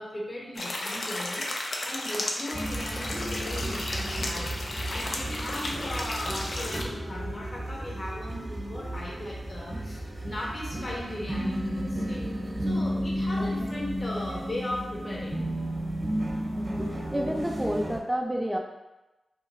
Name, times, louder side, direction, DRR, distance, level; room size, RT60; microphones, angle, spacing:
voice 1, 0.0-1.5 1.8-12.3 12.6-15.5, left 1 dB, 45° left, -3 dB, 0.9 m, -37 dB
sound 1, 0.5-6.8, left 1 dB, 70° left, 0.5 m, -34 dB
sound 2, 2.5-18.0, equal, 35° right, 0.9 m, -33 dB
voice 2, 13.4-13.8 16.5-18.6, equal, 10° right, 0 dB, 0.6 m, -31 dB
2.8 x 2.5 x 3.9 m, 1.0 s
cardioid pair, 45°, 0 cm